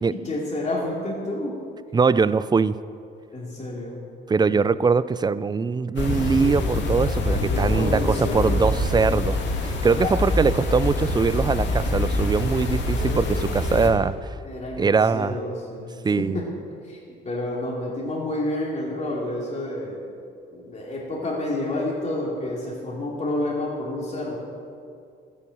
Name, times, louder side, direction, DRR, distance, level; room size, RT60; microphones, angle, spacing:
voice 1, 0.1-1.6 3.3-4.0 4.5-4.7 7.0-8.7 9.9-10.6 14.4-15.9 16.2-16.5 16.8-20.0 20.5-24.4, left 1 dB, 35° left, -5 dB, 2.8 m, -30 dB
voice 2, 1.9-2.8 4.3-14.1 14.8-15.4 16.0-16.4, right 5 dB, 20° right, 17 dB, 0.4 m, -22 dB
sound 1, 6.0-13.9, left 2 dB, 65° left, 2.1 m, -25 dB
11.5 x 8.6 x 7.8 m, 2.3 s
cardioid pair, 90°, 20 cm